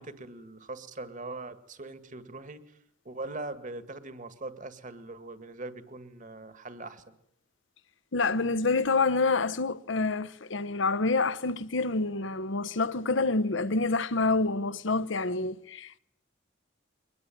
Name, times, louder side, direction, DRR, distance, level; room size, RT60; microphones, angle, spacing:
voice 1, 0.0-2.8 3.1-7.2, right 2 dB, 40° right, 1.9 m, -41 dB
voice 2, 8.1-16.0, left 3 dB, 70° left, 0.9 m, -27 dB
23.0 x 20.5 x 9.1 m
head